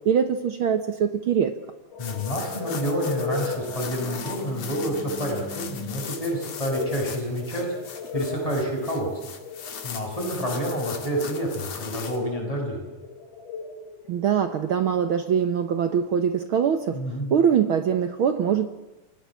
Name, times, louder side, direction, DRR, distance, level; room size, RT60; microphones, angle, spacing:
voice 1, 0.0-1.5 14.1-17.0 17.3-18.7, right 8 dB, 70° right, 9 dB, 1.2 m, -23 dB
sound 1, 1.9-14.1, left 5 dB, 75° left, 4.9 m, -37 dB
sound 2, 2.0-12.2, left 7 dB, 55° left, 2.9 m, -39 dB
voice 2, 2.0-7.7 8.1-9.1 9.8-12.8 16.9-17.3, equal, 10° left, 0 dB, 6.7 m, -28 dB
28.5 x 18.0 x 7.6 m, 1.1 s
omnidirectional pair, 3.6 m